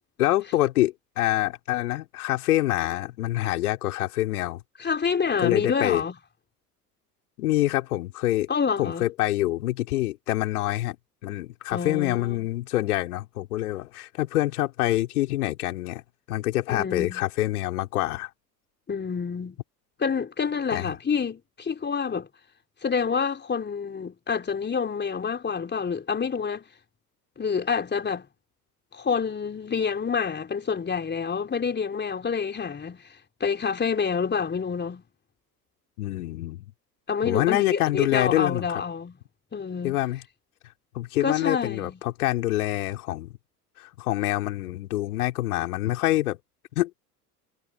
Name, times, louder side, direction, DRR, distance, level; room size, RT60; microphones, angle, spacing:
voice 1, 0.2-4.6 5.4-6.0 7.4-8.5 8.8-11.0 11.2-16.0 16.3-18.3 20.7-20.9 36.0-36.7 37.2-38.8 39.8-40.2 40.9-43.3 43.8-46.4 46.8-46.9, left 16 dB, 65° left, 4.1 m, -26 dB
voice 2, 4.8-6.2 8.5-9.1 11.7-12.4 16.7-17.2 18.9-19.6 20.0-22.3 22.8-26.6 27.4-28.3 28.9-33.0 33.4-35.0 37.1-39.2 39.5-40.0 41.2-42.0, left 6 dB, 20° left, 4.0 m, -27 dB
figure-of-eight pair, 70°, 47 cm